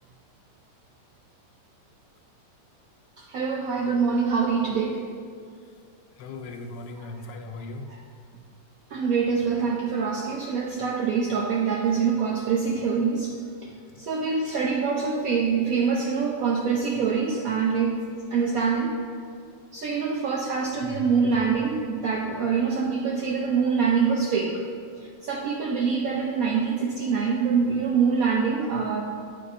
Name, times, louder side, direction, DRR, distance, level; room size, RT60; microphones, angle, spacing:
voice 1, 3.2-5.0 7.9-8.0 8.9-13.7 14.0-18.0 18.3-19.0 19.7-24.6 25.0-29.0, right 5 dB, 75° right, -1 dB, 0.8 m, -25 dB
voice 2, 6.2-8.0 13.9-14.0 20.8-21.1, left 2 dB, 75° left, 4 dB, 1.2 m, -38 dB
8.6 x 3.7 x 4.0 m, 2.2 s
omnidirectional pair, 2.0 m